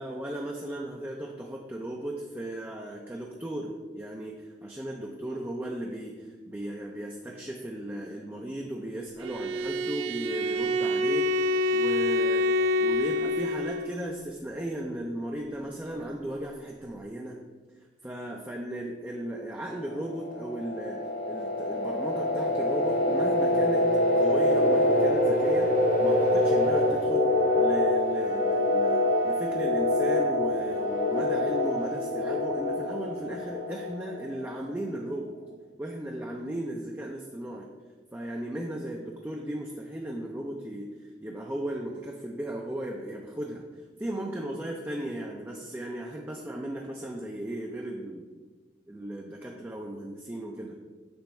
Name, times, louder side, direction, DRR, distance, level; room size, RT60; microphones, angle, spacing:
voice 1, 0.0-11.3 11.7-12.5 12.8-17.4 18.0-21.0 21.3-23.8 24.2-25.7 26.0-27.3 27.6-35.4 35.8-37.7 38.1-40.9 41.2-43.6 44.0-48.3 48.9-50.8, right 1 dB, 10° right, -1 dB, 0.4 m, -36 dB
Bowed string instrument, 9.2-13.9, left 1 dB, 80° right, 0.3 m, -26 dB
sound 1, 19.8-34.4, left 1 dB, 45° left, 0.7 m, -25 dB
6.9 x 3.4 x 4.4 m, 1.3 s
head